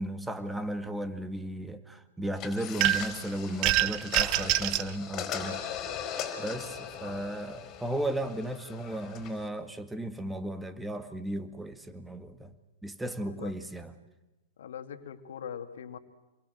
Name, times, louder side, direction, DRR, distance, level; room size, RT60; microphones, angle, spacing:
voice 1, 0.0-5.6 6.4-12.5 12.8-14.0, right 1 dB, 5° right, 2.0 m, -35 dB
sound 1, 2.4-9.5, left 8 dB, 30° left, 4.6 m, -39 dB
sound 2, 2.8-3.2 3.6-4.9, right 17 dB, 40° right, 0.8 m, -26 dB
voice 2, 13.2-13.6 14.6-16.0, left 8 dB, 65° left, 2.2 m, -42 dB
28.5 x 22.5 x 7.9 m
hypercardioid pair, 110°, 0 cm